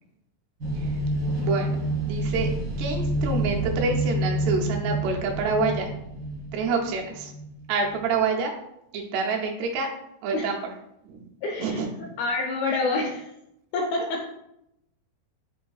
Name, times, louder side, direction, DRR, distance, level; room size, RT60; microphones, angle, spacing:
sound 1, 0.6-8.1, right 1 dB, 65° right, 1.1 m, -28 dB
voice 1, 1.4-1.8 2.0-2.5 2.8-5.9 6.5-7.3 7.7-8.5 8.9-9.9 10.2-10.6 11.0-11.3 11.6-12.0, right 4 dB, 80° right, 0 dB, 2.7 m, -27 dB
voice 2, 11.4-11.8 12.2-13.3 13.7-14.2, left 3 dB, 85° left, -1 dB, 2.1 m, -27 dB
7.8 x 2.6 x 2.3 m, 0.80 s
omnidirectional pair, 4.7 m